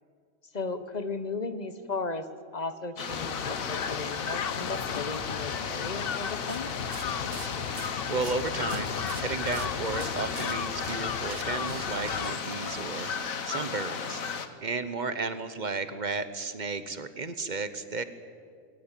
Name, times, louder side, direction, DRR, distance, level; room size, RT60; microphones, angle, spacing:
voice 1, 0.5-2.3 2.5-6.7, left 3 dB, 35° left, 11 dB, 1.2 m, -35 dB
sound 1, 3.0-14.5, left 6 dB, 90° left, 1.7 m, -35 dB
sound 2, 3.1-12.4, left 8 dB, 50° left, 0.8 m, -36 dB
sound 3, 6.5-13.3, right 9 dB, 70° right, 1.2 m, -46 dB
voice 2, 8.1-14.2 14.6-18.0, right 4 dB, 35° right, 12 dB, 1.2 m, -33 dB
22.0 x 18.5 x 9.1 m, 2.1 s
omnidirectional pair, 1.4 m